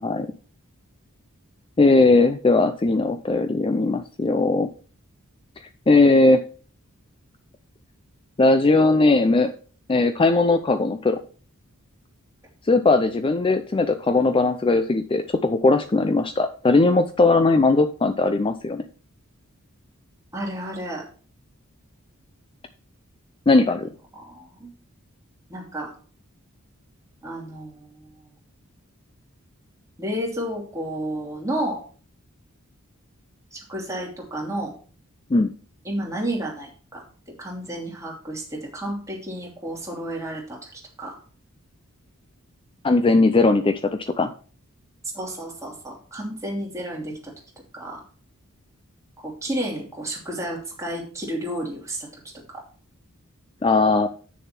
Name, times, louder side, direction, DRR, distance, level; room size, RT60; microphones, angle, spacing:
voice 1, 1.8-4.7 5.9-6.4 8.4-9.5 9.9-11.2 12.7-18.8 23.5-23.9 35.3-35.5 42.8-44.3 53.6-54.1, left 3 dB, 25° left, 9 dB, 0.4 m, -19 dB
voice 2, 20.3-21.0 24.1-24.7 25.5-25.9 27.2-28.3 30.0-31.8 33.5-34.7 35.8-37.0 37.4-41.2 45.1-47.3 47.7-48.0 49.2-52.2 52.5-52.6, right 1 dB, 15° right, -2 dB, 2.8 m, -31 dB
8.5 x 6.7 x 4.4 m, 0.40 s
head